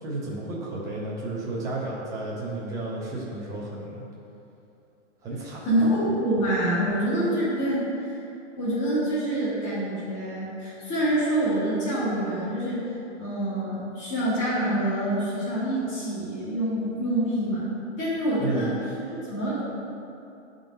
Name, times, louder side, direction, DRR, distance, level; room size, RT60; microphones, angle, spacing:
voice 1, 0.0-4.0 5.2-5.9 18.4-18.8, right 2 dB, 10° right, -5 dB, 0.5 m, -32 dB
voice 2, 5.6-8.2 8.6-12.8 13.2-17.7 18.0-18.7 19.3-19.6, right 1 dB, 20° left, -12 dB, 1.5 m, -26 dB
10.0 x 3.8 x 2.6 m, 2.8 s
hypercardioid pair, 150°, 36 cm